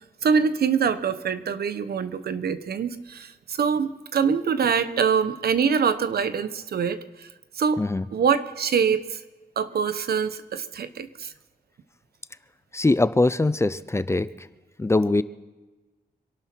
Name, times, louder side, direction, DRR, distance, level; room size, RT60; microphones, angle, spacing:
voice 1, 0.2-7.3 7.5-7.8 8.1-9.2 9.6-11.3, right 6 dB, 85° right, 12 dB, 1.0 m, -24 dB
voice 2, 12.7-14.5 14.8-15.2, left 2 dB, 15° left, 14 dB, 0.5 m, -22 dB
26.5 x 12.0 x 4.5 m, 1.2 s
wide cardioid pair, 115°, 16 cm